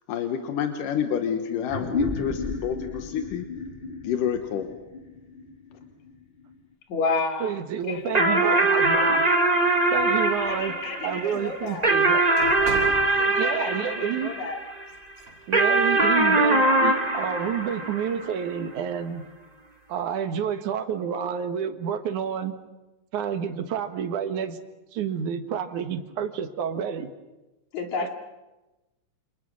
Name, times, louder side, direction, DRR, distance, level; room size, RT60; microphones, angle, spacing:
voice 1, 0.1-3.5 4.0-4.7, left 8 dB, 90° left, 6 dB, 2.9 m, -28 dB
sound 1, 1.7-6.6, left 3 dB, 20° left, 1.7 m, -33 dB
voice 2, 6.9-7.6 7.9-8.7 10.4-11.9 13.2-14.6 27.7-28.1, left 4 dB, 65° left, 4 dB, 3.9 m, -31 dB
voice 3, 7.4-9.2 9.9-10.7 11.0-12.2 13.4-14.3 15.5-19.2 19.9-22.5 23.1-24.6 24.9-27.1 28.0-28.1, right 8 dB, 70° right, 8 dB, 2.9 m, -29 dB
sound 2, 8.1-14.8 15.5-18.3, right 2 dB, 15° right, 1.5 m, -22 dB
sound 3, 9.9-10.6 11.3-13.2 14.9-15.4, right 2 dB, 45° right, 6.9 m, -38 dB
28.5 x 28.0 x 6.3 m, 1.0 s
omnidirectional pair, 3.6 m